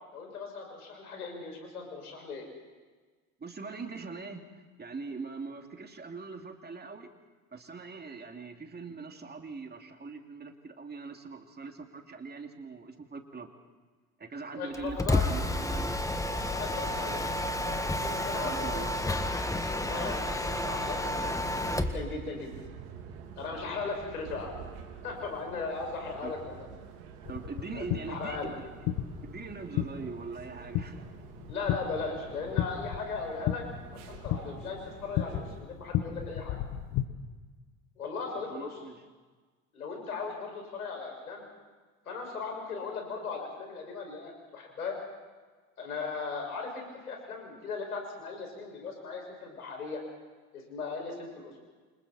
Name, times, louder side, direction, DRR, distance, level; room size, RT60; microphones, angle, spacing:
voice 1, 0.1-2.4 14.6-15.2 16.5-17.3 17.8-19.1 19.7-22.5 23.4-24.6 25.0-26.7 27.7-28.5 31.5-33.6 34.2-36.6 38.0-38.8 39.7-41.5 42.0-45.0 45.8-50.0 50.5-51.6, left 4 dB, 85° left, 2 dB, 6.4 m, -38 dB
voice 2, 3.4-4.5 4.8-7.1 7.5-13.5 14.2-16.0 16.6-16.8 18.4-18.9 26.2-26.3 27.3-28.5 29.2-31.1 38.5-39.0, right 4 dB, 20° right, 4 dB, 2.8 m, -42 dB
Mechanisms, 14.7-22.0, left 1 dB, 5° left, 1.9 m, -31 dB
sound 1, 16.3-35.6, right 7 dB, 65° right, 3.2 m, -48 dB
sound 2, 27.3-37.1, left 11 dB, 50° left, 1.5 m, -35 dB
28.5 x 26.5 x 4.4 m, 1.4 s
hypercardioid pair, 75°, 43 cm